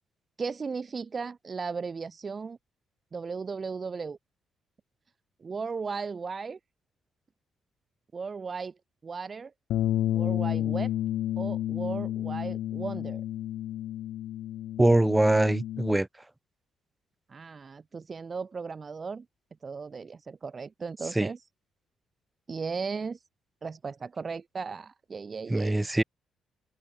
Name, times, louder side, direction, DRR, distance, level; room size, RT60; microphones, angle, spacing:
voice 1, 0.4-2.6 3.1-4.2 5.4-6.6 8.1-8.7 9.0-9.5 10.1-10.9 11.4-13.2 17.3-19.3 19.6-21.4 22.5-23.2 23.6-25.8, right 5 dB, 35° right, 1.9 m, -36 dB
Bass guitar, 9.7-16.0, left 13 dB, 80° left, 1.9 m, -31 dB
voice 2, 14.8-16.1 21.1-21.3 25.5-26.0, right 1 dB, 10° right, 3.0 m, -23 dB
open air
cardioid pair, 90°, 0 cm